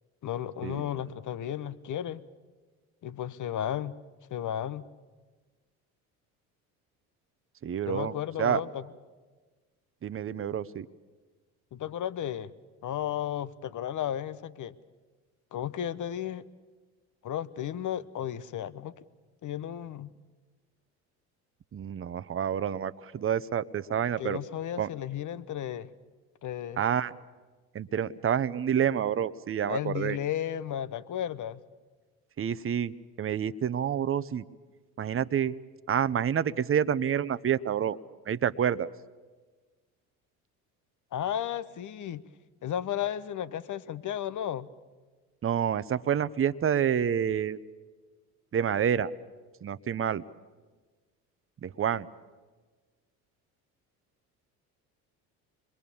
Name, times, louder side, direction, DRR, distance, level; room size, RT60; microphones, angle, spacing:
voice 1, 0.2-2.2 3.0-3.9 4.3-4.8 7.8-8.8 11.7-12.5 12.8-14.8 15.5-16.4 17.2-19.0 19.4-20.1 24.2-25.9 26.4-26.8 29.7-31.6 41.1-42.2 42.6-44.7, left 10 dB, 45° left, 15 dB, 1.1 m, -34 dB
voice 2, 7.6-8.6 10.0-10.9 21.7-24.4 24.8-24.9 26.8-27.1 27.7-30.2 32.4-34.4 35.0-35.5 35.9-38.0 38.3-38.9 45.4-47.6 48.5-49.1 49.6-50.2 51.6-52.1, right 9 dB, 30° right, 15 dB, 0.9 m, -28 dB
26.5 x 21.5 x 7.1 m, 1.4 s
hypercardioid pair, 65°, 44 cm